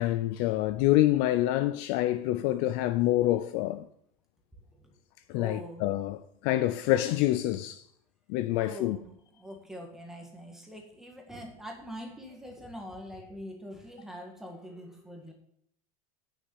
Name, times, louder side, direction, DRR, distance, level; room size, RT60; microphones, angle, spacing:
voice 1, 0.0-3.8 5.3-7.8 8.3-9.0, left 15 dB, 45° left, 0.4 m, -27 dB
voice 2, 5.3-5.9 8.5-15.3, equal, ahead, 1.8 m, -44 dB
9.9 x 6.6 x 7.1 m
supercardioid pair, 165°, 19 cm